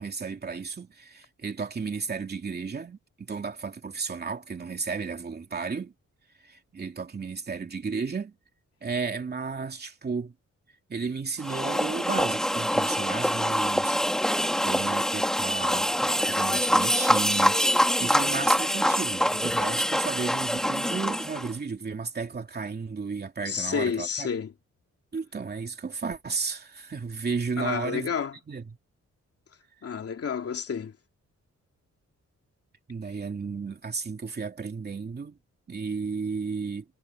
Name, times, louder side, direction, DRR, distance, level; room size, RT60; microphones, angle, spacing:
voice 1, 0.0-5.9 6.4-8.4 8.8-10.3 10.9-17.6 18.0-24.3 25.1-28.1 28.5-28.7 32.9-35.4 35.7-36.8, right 5 dB, 35° right, 2.9 m, -33 dB
sound 1, 11.4-21.5, equal, ahead, 1.8 m, -25 dB
voice 2, 23.4-24.5 27.6-28.3 29.8-30.9, left 6 dB, 55° left, 2.9 m, -30 dB
wide cardioid pair, 155°, 29 cm